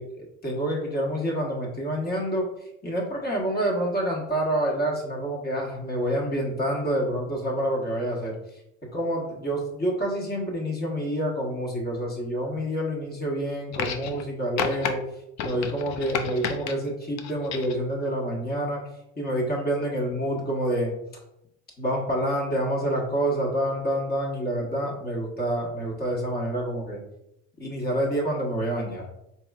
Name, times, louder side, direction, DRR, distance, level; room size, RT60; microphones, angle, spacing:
voice 1, 0.0-8.6 8.9-15.0 15.4-18.8 19.2-20.9 21.8-27.0 27.6-29.1, right 1 dB, 30° left, -1 dB, 1.2 m, -28 dB
sound 1, 13.7-14.3 14.6-14.9 15.4-16.7 17.2-17.8 18.9-19.0, left 7 dB, 65° left, 0.5 m, -31 dB
4.3 x 3.0 x 2.3 m, 0.83 s
cardioid pair, 100°, 30 cm